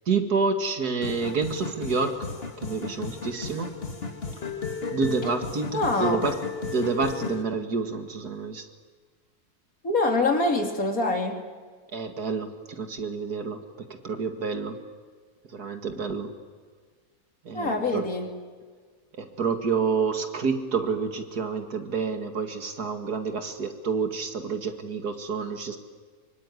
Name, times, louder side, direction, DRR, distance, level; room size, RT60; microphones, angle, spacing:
voice 1, 0.1-2.3 2.6-3.7 4.9-6.4 6.6-8.6 11.9-13.6 14.0-14.8 15.5-16.3 17.4-18.0 19.2-25.8, right 5 dB, 85° right, 6 dB, 2.6 m, -28 dB
sound 1, 1.0-7.4, left 4 dB, 40° left, 2.3 m, -34 dB
voice 2, 5.7-6.2 9.8-11.4 17.5-18.4, left 2 dB, 65° left, 3 dB, 3.4 m, -25 dB
24.5 x 24.0 x 9.7 m, 1.5 s
omnidirectional pair, 1.6 m